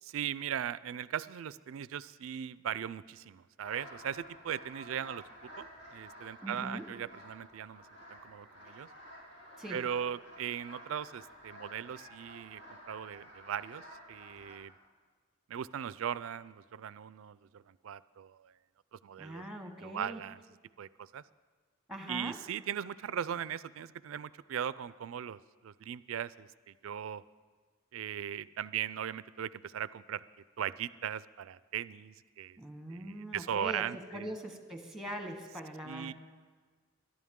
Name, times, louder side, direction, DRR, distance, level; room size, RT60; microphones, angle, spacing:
voice 1, 0.0-5.2 5.6-5.7 5.9-7.8 8.1-8.9 9.7-12.6 12.9-14.7 15.5-18.5 18.9-19.4 19.8-20.4 20.8-21.2 22.1-27.2 27.9-30.2 30.6-32.6 32.9-34.3 35.8-36.1, right 9 dB, 75° right, 17 dB, 0.4 m, -39 dB
sound 1, 3.6-14.6, equal, 75° left, 5.7 m, -52 dB
voice 2, 6.4-6.9 9.6-9.9 19.2-20.3 21.9-22.4 32.6-36.1, equal, ahead, 5 dB, 1.2 m, -42 dB
22.5 x 11.5 x 3.7 m, 1.5 s
head